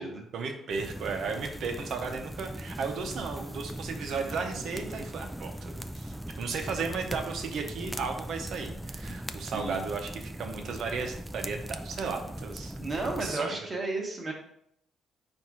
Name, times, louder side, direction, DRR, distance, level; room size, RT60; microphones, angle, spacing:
voice 1, 0.3-12.7 13.2-13.6, right 4 dB, 70° right, 4 dB, 0.7 m, -35 dB
sound 1, 0.7-13.3, right 1 dB, 5° right, 0.3 m, -40 dB
voice 2, 12.8-14.3, right 2 dB, 30° right, 0 dB, 1.1 m, -33 dB
4.3 x 2.6 x 4.8 m, 0.72 s
cardioid pair, 90°, 0 cm